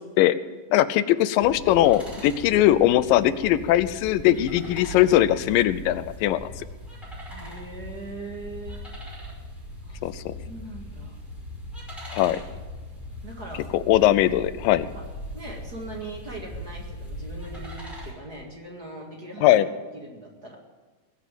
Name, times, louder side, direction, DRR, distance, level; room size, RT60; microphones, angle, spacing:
voice 1, 0.7-6.6 10.0-10.3 12.1-12.4 13.7-14.9 19.4-19.7, left 13 dB, 90° left, 15 dB, 2.4 m, -20 dB
sound 1, 1.4-18.1, left 1 dB, ahead, 4.9 m, -39 dB
voice 2, 7.3-8.8 9.8-10.1 10.4-11.2 13.2-14.1 14.9-15.0 15.3-19.6 19.9-20.6, right 2 dB, 35° right, -1 dB, 2.1 m, -40 dB
20.0 x 7.2 x 9.0 m, 1.3 s
omnidirectional pair, 3.9 m